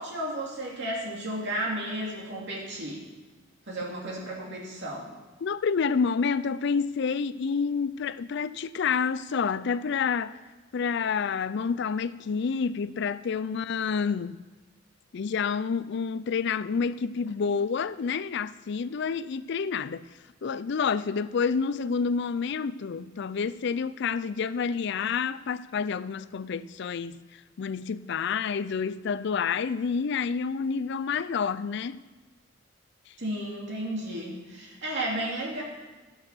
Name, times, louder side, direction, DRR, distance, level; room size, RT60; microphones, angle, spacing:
voice 1, 0.0-3.0 3.7-5.1 33.2-35.6, right 1 dB, 60° right, 2.7 m, -33 dB
voice 2, 5.4-10.4 10.7-14.4 15.1-20.1 20.4-27.2 27.6-32.0, left 5 dB, 60° left, 0.4 m, -28 dB
16.0 x 6.4 x 5.7 m
head